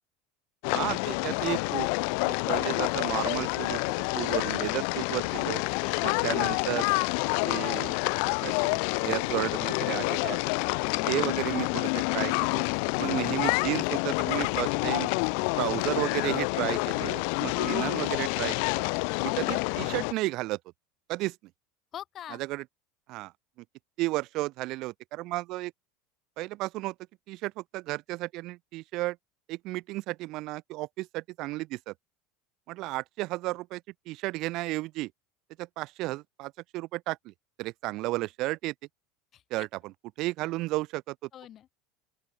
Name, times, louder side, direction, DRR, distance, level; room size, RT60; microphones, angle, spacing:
sound 1, 0.6-20.1, left 40 dB or more, 70° left, 1.3 m, -28 dB
voice 1, 0.7-1.9 2.5-3.8 4.1-5.6 6.0-6.8 7.4-8.0 8.4-10.4 11.1-12.7 13.0-15.1 15.6-18.8 19.2-20.6 21.1-21.4 22.4-22.6 23.1-23.3 24.0-25.7 26.4-26.9 27.3-29.2 29.5-31.9 32.7-33.8 34.1-35.1 35.6-37.3 37.6-38.7 39.5-39.9 40.2-41.1, right 19 dB, 60° right, 0.6 m, -33 dB
voice 2, 5.7-6.2 10.8-11.1 21.9-22.4 39.3-39.7 41.3-41.7, left 11 dB, 40° left, 7.8 m, -44 dB
open air
supercardioid pair, 100°, 0 cm